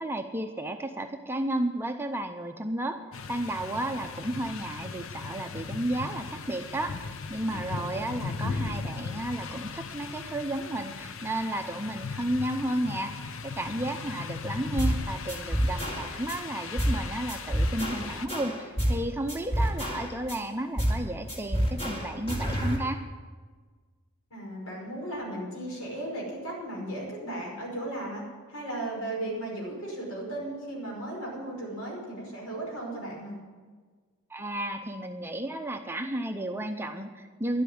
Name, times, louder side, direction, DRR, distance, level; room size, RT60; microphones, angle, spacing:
voice 1, 0.0-3.0 3.3-23.0 34.3-37.6, right 1 dB, 10° right, 5 dB, 0.6 m, -33 dB
sound 1, 3.1-18.3, left 4 dB, 60° left, 0.7 m, -38 dB
sound 2, 14.8-15.0 15.3-16.4 16.8-17.0 17.3-19.0 19.3-20.4 20.8-21.0 21.3-22.8, equal, 25° left, 2.2 m, -28 dB
voice 2, 24.3-28.2 28.5-33.4, right 1 dB, 80° left, -2 dB, 5.2 m, -36 dB
11.5 x 8.3 x 9.4 m, 1.5 s
head